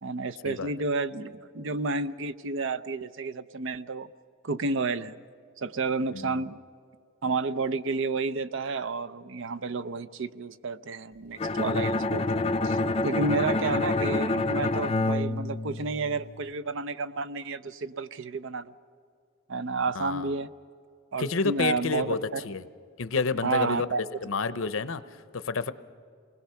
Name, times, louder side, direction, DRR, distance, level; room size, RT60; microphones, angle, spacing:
voice 1, 0.0-4.1 4.4-5.2 5.6-6.6 7.2-18.7 19.5-20.5 21.1-22.4 23.4-24.0, right 3 dB, 65° right, 14 dB, 0.6 m, -31 dB
voice 2, 6.1-6.4 13.1-13.6 19.9-20.4 21.2-22.6 23.0-23.9 24.2-25.7, left 4 dB, 70° left, 13 dB, 0.8 m, -30 dB
Bowed string instrument, 11.4-16.3, left 2 dB, 30° left, 0.5 m, -27 dB
28.0 x 20.5 x 5.8 m, 2.4 s
head